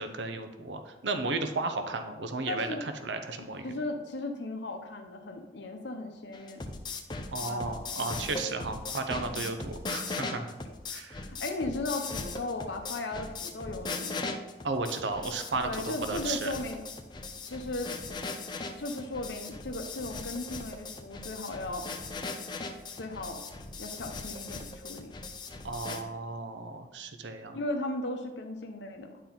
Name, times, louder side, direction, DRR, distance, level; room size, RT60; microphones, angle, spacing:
voice 1, 0.0-3.7 7.3-10.5 10.9-11.3 14.6-16.5 25.6-27.6, right 3 dB, 80° right, 7 dB, 0.7 m, -34 dB
voice 2, 2.5-2.8 3.6-6.6 7.2-8.5 9.3-9.6 11.4-14.3 15.6-16.8 17.4-18.3 18.8-21.9 23.0-23.4 23.8-25.2 27.5-29.2, left 2 dB, 80° left, 4 dB, 0.7 m, -37 dB
sound 1, 6.3-26.0, left 3 dB, 25° left, 0.5 m, -39 dB
10.0 x 4.4 x 3.9 m, 1.1 s
head